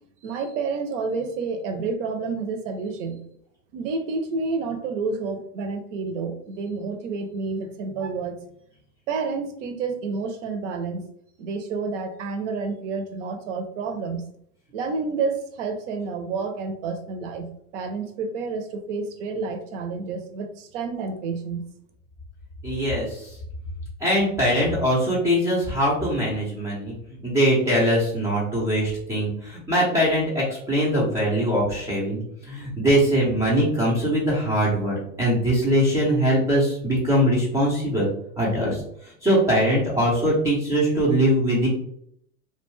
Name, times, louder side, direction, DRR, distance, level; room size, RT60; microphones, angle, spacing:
voice 1, 0.2-3.2 3.7-8.4 9.1-11.0 11.4-14.2 14.7-21.6, right 4 dB, 55° right, 7 dB, 0.6 m, -29 dB
voice 2, 22.6-23.4 24.0-38.1 38.4-41.7, equal, 5° right, -6 dB, 0.4 m, -22 dB
2.5 x 2.2 x 3.0 m, 0.69 s
hypercardioid pair, 125°, 45 cm